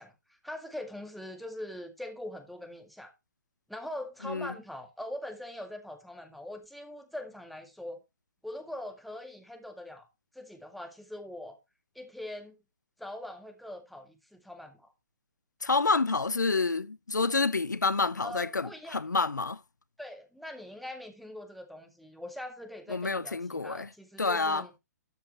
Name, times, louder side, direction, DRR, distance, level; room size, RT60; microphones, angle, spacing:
voice 1, 0.0-3.1 3.7-8.0 8.4-10.1 10.3-11.6 12.0-12.6 13.0-14.9 18.2-19.2 20.0-24.7, left 1 dB, ahead, 1.9 m, -42 dB
voice 2, 15.6-19.6 22.9-23.9 24.2-24.6, left 4 dB, 90° left, 0.6 m, -28 dB
13.0 x 7.1 x 3.1 m
figure-of-eight pair, 125°, 9 cm